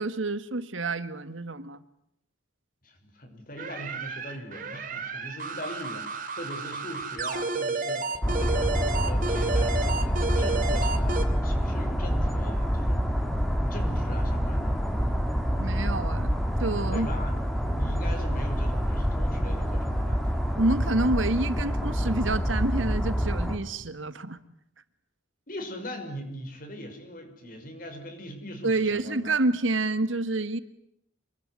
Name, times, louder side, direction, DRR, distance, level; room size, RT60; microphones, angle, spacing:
voice 1, 0.0-1.8 15.6-16.3 16.6-17.1 20.6-24.4 28.6-30.6, right 2 dB, 85° right, 12 dB, 1.8 m, -28 dB
voice 2, 2.8-13.1 13.4-14.8 16.9-20.3 25.5-29.4, equal, 45° left, 5 dB, 5.9 m, -40 dB
sound 1, 3.6-11.3, right 3 dB, 45° right, 2.6 m, -31 dB
sound 2, 8.2-23.6, equal, ahead, 3.0 m, -27 dB
27.5 x 21.5 x 9.8 m, 0.76 s
head